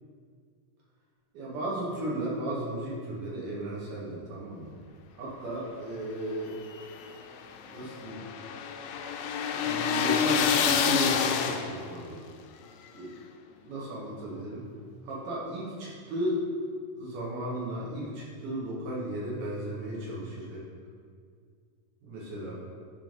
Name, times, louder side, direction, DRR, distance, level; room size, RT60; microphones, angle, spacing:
voice 1, 1.3-4.7 5.1-6.6 7.6-8.2 9.6-12.2 12.9-13.1 13.6-14.6 15.0-16.4 17.0-20.6 22.0-22.6, right 1 dB, 75° right, -6 dB, 3.1 m, -35 dB
sound 1, 6.5-12.0, left 7 dB, 90° left, 2.2 m, -28 dB
8.6 x 3.7 x 5.3 m, 2.1 s
omnidirectional pair, 3.8 m